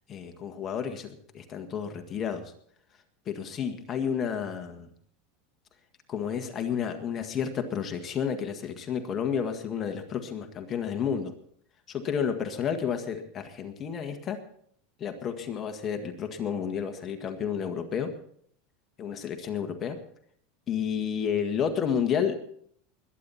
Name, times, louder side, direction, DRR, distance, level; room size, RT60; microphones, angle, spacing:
voice 1, 0.1-2.5 3.2-4.9 6.1-11.3 11.9-14.4 15.0-18.1 19.0-20.0 20.7-22.4, left 7 dB, 30° left, 5 dB, 1.7 m, -31 dB
21.5 x 10.0 x 4.3 m, 0.62 s
supercardioid pair, 140°, 0 cm